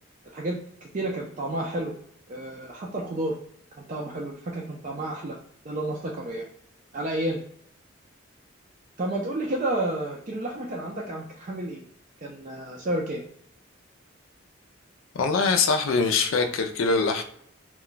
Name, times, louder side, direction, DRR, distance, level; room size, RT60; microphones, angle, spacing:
voice 1, 0.3-1.9 2.3-3.4 3.7-5.4 5.6-6.5 6.9-7.4 9.0-11.8 12.2-13.2, right 1 dB, 40° right, -2 dB, 0.4 m, -31 dB
voice 2, 15.1-17.2, left 4 dB, 80° left, 6 dB, 0.4 m, -23 dB
2.2 x 2.2 x 3.8 m, 0.67 s
head